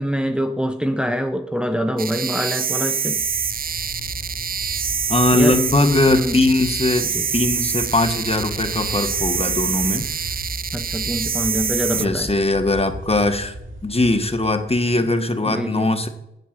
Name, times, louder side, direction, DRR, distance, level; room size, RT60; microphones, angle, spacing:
voice 1, 0.0-3.2 5.3-5.6 6.1-6.4 7.0-7.3 10.7-12.3 15.0-15.1 15.5-16.0, equal, 5° right, 6 dB, 1.0 m, -24 dB
sound 1, 2.0-12.1, right 6 dB, 45° right, 0.4 m, -25 dB
sound 2, 3.0-14.9, right 1 dB, 65° right, 2.4 m, -36 dB
voice 2, 5.1-10.1 11.9-13.5 13.8-16.1, left 2 dB, 30° left, 8 dB, 1.5 m, -20 dB
8.1 x 8.0 x 7.5 m, 0.89 s
cardioid pair, 50°, 21 cm